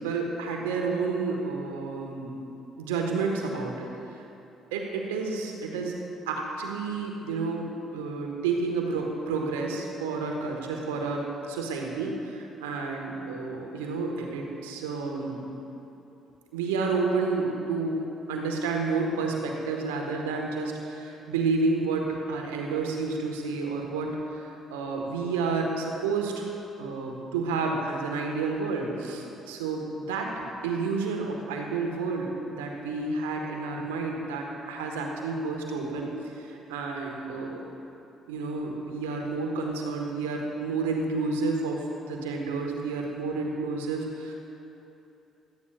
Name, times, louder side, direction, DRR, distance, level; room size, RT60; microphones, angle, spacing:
voice 1, 0.0-2.3 2.8-3.9 4.1-4.2 4.7-6.0 6.2-15.4 16.5-18.0 18.3-26.4 26.8-30.3 30.6-37.7 38.3-44.3, right 4 dB, 80° right, 1 dB, 1.3 m, -30 dB
17.0 x 13.0 x 2.4 m, 2.9 s
hypercardioid pair, 50°, 0 cm